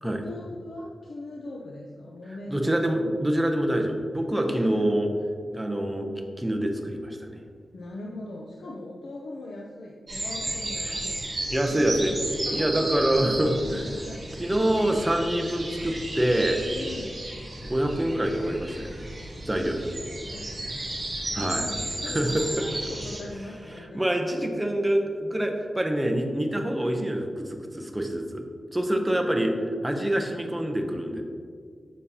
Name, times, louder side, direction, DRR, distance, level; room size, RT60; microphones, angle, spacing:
voice 1, 0.0-2.7 4.4-4.9 5.9-6.2 7.7-14.6 16.7-17.2 20.0-24.5 28.8-29.8, left 2 dB, 80° left, -2 dB, 0.6 m, -41 dB
voice 2, 2.5-5.1 5.5-6.1 6.4-7.3 11.5-12.1 12.5-13.8 14.4-16.6 17.6-19.1 19.5-19.9 21.3-21.7 22.1-22.4 23.9-28.4 28.7-31.2, right 1 dB, 10° right, 3 dB, 0.6 m, -26 dB
sound 1, 10.1-23.2, right 1 dB, 25° right, 1.3 m, -34 dB
7.3 x 5.4 x 2.7 m, 2.1 s
wide cardioid pair, 145°, 0 cm